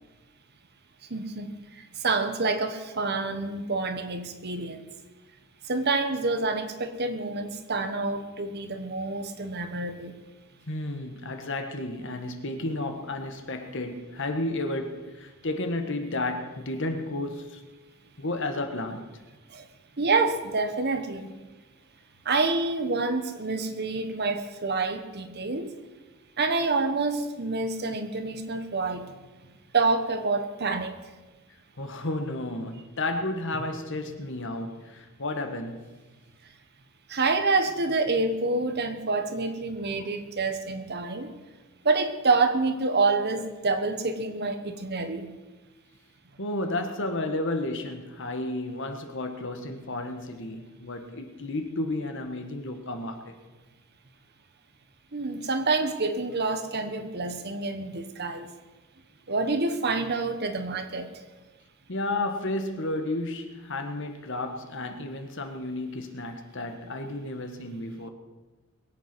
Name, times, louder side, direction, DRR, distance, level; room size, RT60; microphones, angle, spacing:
voice 1, 1.1-1.5 2.0-4.8 5.7-10.1 19.5-19.6 20.0-21.3 22.2-25.7 26.4-29.1 29.7-31.0 37.1-41.3 41.8-45.3 55.1-58.5 59.3-61.1, right 3 dB, 50° right, 1.2 m, -27 dB
voice 2, 10.7-17.6 18.2-19.0 21.2-21.3 31.8-35.9 46.4-53.3 61.9-68.1, left 2 dB, 55° left, 1.6 m, -32 dB
22.0 x 8.3 x 6.2 m
head